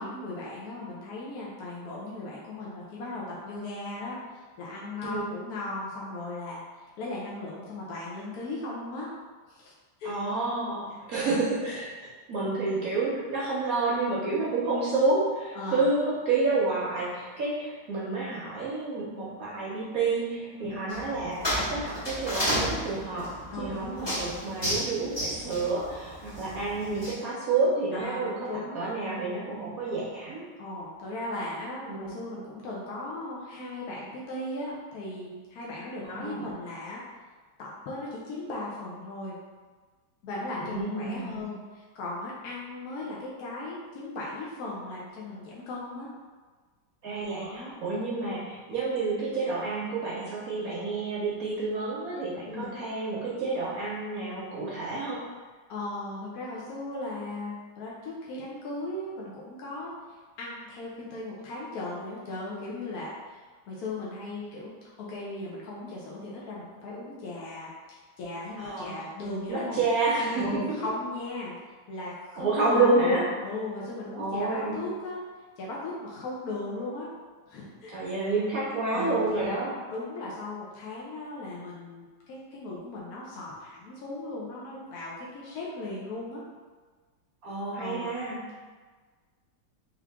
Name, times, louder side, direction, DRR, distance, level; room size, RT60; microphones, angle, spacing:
voice 1, 0.0-4.2 4.6-6.6 7.0-9.1 9.5-9.7 10.0-10.1 15.5-15.9 20.5-20.8 23.5-24.1 27.9-28.8 30.6-37.0 37.6-39.4 40.2-46.1 47.3-47.7 52.5-52.7 55.7-59.9 60.4-63.4 63.7-64.7 65.0-69.8 70.4-71.5 71.9-75.2 75.6-77.1 77.5-77.9 78.9-79.5 79.9-86.4 87.8-88.1, left 2 dB, 70° left, -5 dB, 0.9 m, -37 dB
voice 2, 10.0-11.9 12.3-23.3 23.6-30.5 31.8-32.1 36.0-36.5 40.6-41.4 47.0-55.2 68.6-69.0 69.5-70.5 72.4-73.2 74.2-74.8 77.9-79.7 87.4-88.4, right 3 dB, 65° right, -6 dB, 0.9 m, -29 dB
sound 1, 20.9-27.1, equal, 35° left, 0.4 m, -32 dB
3.6 x 3.2 x 3.4 m, 1.4 s
omnidirectional pair, 2.3 m